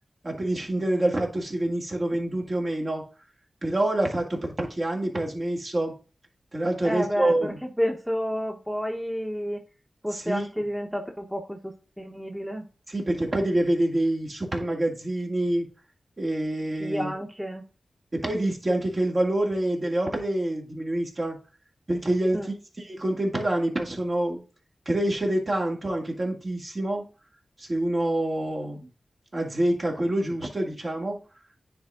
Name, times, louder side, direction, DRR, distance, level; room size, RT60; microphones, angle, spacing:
voice 1, 0.2-3.0 3.6-5.9 6.5-7.6 10.1-10.5 12.9-15.7 16.2-17.1 18.1-21.4 21.9-24.4 24.9-27.0 27.6-28.9 29.3-31.2, right 1 dB, 40° right, 0 dB, 2.3 m, -26 dB
voice 2, 6.8-9.6 10.0-12.6 16.8-17.6 22.3-22.5, equal, ahead, 2 dB, 1.2 m, -30 dB
9.4 x 3.6 x 3.8 m, 0.35 s
cardioid pair, 55°, 0 cm